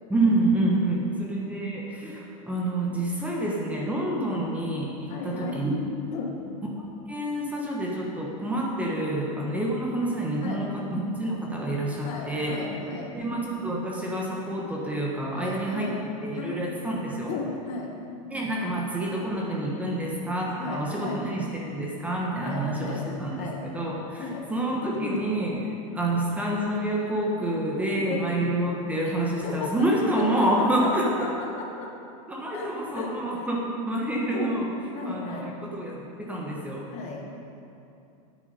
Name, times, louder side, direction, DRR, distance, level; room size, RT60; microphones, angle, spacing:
voice 1, 0.1-5.8 6.7-12.6 13.1-17.3 18.3-31.1 32.3-34.7 35.1-36.9, right 1 dB, 10° right, -3 dB, 1.2 m, -28 dB
voice 2, 5.1-5.6 6.1-6.3 10.4-10.6 12.0-13.1 15.3-16.0 16.3-16.7 17.3-17.9 20.6-21.2 22.4-23.1 23.3-23.6 24.2-24.5 24.9-25.2 25.5-25.8 28.0-28.2 29.0-29.2 29.4-29.9 30.2-30.5 30.8-31.9 32.5-33.1 34.3-34.6 34.9-35.5 36.9-37.2, left 4 dB, 40° left, 0 dB, 1.5 m, -35 dB
9.4 x 8.6 x 5.2 m, 2.7 s
supercardioid pair, 140°, 18 cm